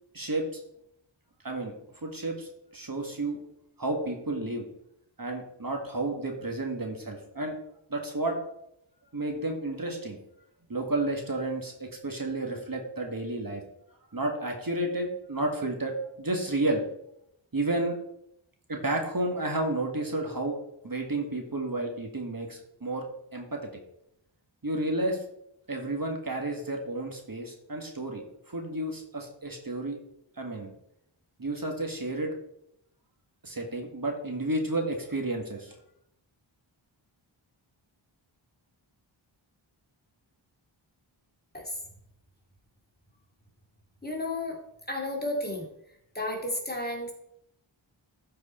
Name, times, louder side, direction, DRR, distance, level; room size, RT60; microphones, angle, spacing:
voice 1, 0.1-0.6 1.4-1.7 2.0-3.4 3.8-4.6 5.2-7.5 7.9-8.4 9.1-10.2 10.7-13.6 14.1-16.8 17.5-18.0 18.7-20.6 20.8-23.0 23.3-23.6 24.6-25.2 25.7-30.0 30.4-30.7 31.4-32.3 33.4-35.7, right 2 dB, 45° right, 2 dB, 1.7 m, -31 dB
voice 2, 44.0-44.6 44.9-45.7 46.1-47.1, left 1 dB, 20° left, -1 dB, 2.3 m, -32 dB
13.5 x 4.8 x 4.3 m, 0.77 s
wide cardioid pair, 60°, 49 cm